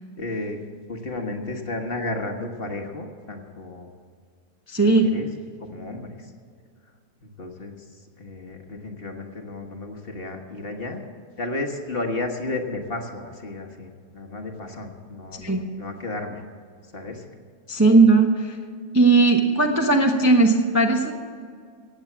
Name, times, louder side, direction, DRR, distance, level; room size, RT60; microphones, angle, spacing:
voice 1, 0.1-0.6 0.9-3.9 4.8-5.3 5.6-6.3 7.2-7.8 8.2-11.0 11.4-16.4 16.9-17.3, left 2 dB, 40° left, 3 dB, 1.4 m, -33 dB
voice 2, 4.7-5.1 15.3-15.7 17.7-18.6 18.9-21.1, right 3 dB, 15° right, 2 dB, 0.8 m, -18 dB
17.5 x 8.0 x 7.3 m, 2.1 s
omnidirectional pair, 1.7 m